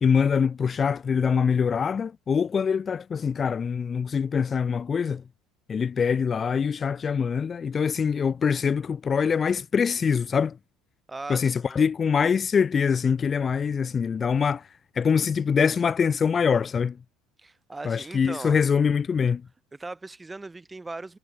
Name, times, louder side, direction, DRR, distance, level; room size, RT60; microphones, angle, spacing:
voice 1, 0.0-5.2 5.7-10.6 11.3-14.6 15.0-17.0 17.8-19.4, left 6 dB, 35° left, 0.6 m, -24 dB
voice 2, 11.1-11.8 17.4-18.6 19.7-21.2, right 3 dB, 15° right, 3.7 m, -39 dB
hypercardioid pair, 70°, 0 cm